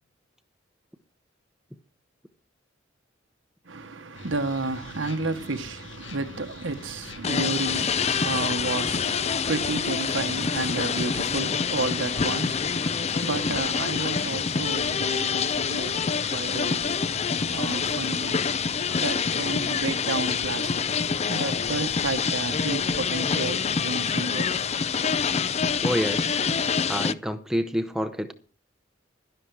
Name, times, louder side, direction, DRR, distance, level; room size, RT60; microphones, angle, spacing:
voice 1, 3.6-24.9, right 3 dB, 80° right, 1.2 m, -32 dB
sound 1, 4.1-23.8, left 3 dB, 70° left, 1.9 m, -45 dB
sound 2, 7.2-27.1, left 6 dB, 35° left, 0.5 m, -26 dB
voice 2, 25.8-26.5 26.9-28.3, equal, 5° right, 0.8 m, -28 dB
11.5 x 11.5 x 4.7 m
head